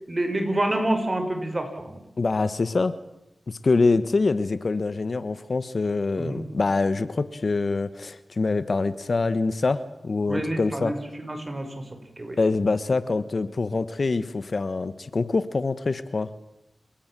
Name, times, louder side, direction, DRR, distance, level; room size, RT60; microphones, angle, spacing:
voice 1, 0.1-2.0 6.2-6.4 10.3-11.9 12.2-12.4, right 1 dB, 35° right, 6 dB, 5.5 m, -28 dB
voice 2, 2.2-2.9 3.5-10.9 12.4-16.3, left 3 dB, 60° left, 14 dB, 1.3 m, -25 dB
29.5 x 17.5 x 7.6 m, 0.87 s
cardioid pair, 50°, 0 cm